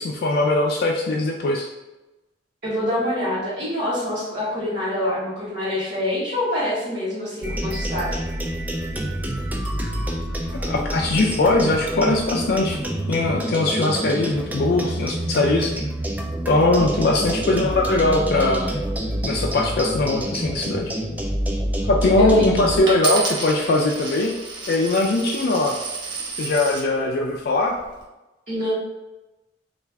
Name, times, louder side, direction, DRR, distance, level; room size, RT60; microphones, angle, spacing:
voice 1, 0.0-1.7 10.5-12.8 13.1-15.7 16.5-18.7 19.2-20.9 21.8-24.3 24.7-25.8 26.4-27.8, left 2 dB, 60° left, 0 dB, 0.3 m, -21 dB
voice 2, 2.6-8.2 22.2-22.4 28.5-28.7, left 1 dB, 55° right, -12 dB, 1.3 m, -25 dB
sound 1, 7.4-22.8, right 1 dB, 10° right, 0.4 m, -27 dB
Coin (dropping), 22.9-26.9 27.6-28.0, right 4 dB, 75° right, 1.1 m, -30 dB
3.2 x 2.4 x 3.3 m, 1.0 s
head